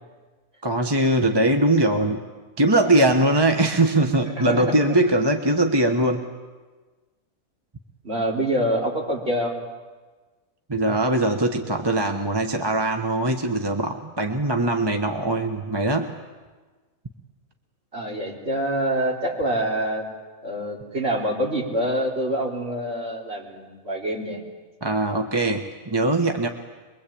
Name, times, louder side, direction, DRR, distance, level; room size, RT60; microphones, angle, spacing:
voice 1, 0.6-2.2 2.6-6.2 10.7-16.2 24.8-26.5, right 1 dB, 20° right, 4 dB, 1.2 m, -21 dB
voice 2, 4.3-4.8 8.0-9.5 17.9-20.1 20.4-24.4, right 1 dB, 45° right, -1 dB, 3.8 m, -26 dB
23.5 x 23.0 x 8.6 m, 1.3 s
omnidirectional pair, 1.5 m